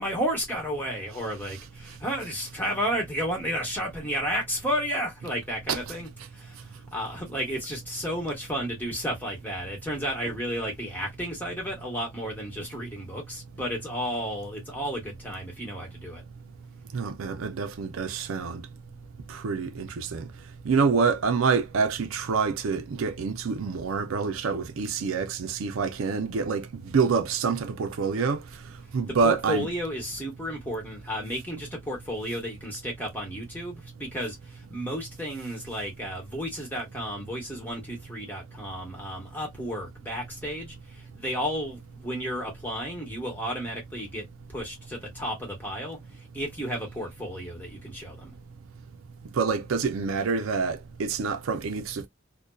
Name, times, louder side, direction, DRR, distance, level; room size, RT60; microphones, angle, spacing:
voice 1, 0.0-16.2 29.2-48.3, equal, 10° left, 1.1 m, -32 dB
voice 2, 16.9-18.6 19.3-20.2 20.7-26.7 26.9-28.4 28.9-29.7 49.4-52.1, right 5 dB, 80° right, 0.5 m, -26 dB
2.6 x 2.1 x 2.2 m
head